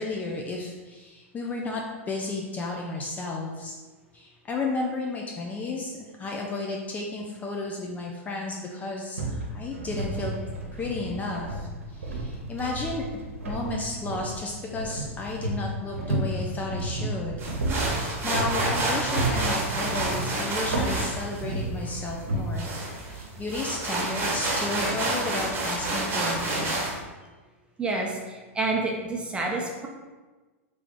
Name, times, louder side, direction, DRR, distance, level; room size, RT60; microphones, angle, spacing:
voice 1, 0.0-3.8 4.1-10.3 10.7-13.0 13.4-17.5 18.2-22.7 23.0-26.9, left 3 dB, 20° left, -1 dB, 0.5 m, -33 dB
sound 1, 9.2-22.4, right 2 dB, 85° right, 0.9 m, -32 dB
sound 2, 17.4-27.0, right 2 dB, 30° right, 1.2 m, -29 dB
voice 2, 27.8-29.9, right 2 dB, 15° right, -1 dB, 0.8 m, -29 dB
3.5 x 3.3 x 3.8 m, 1.3 s
hypercardioid pair, 110°, 7 cm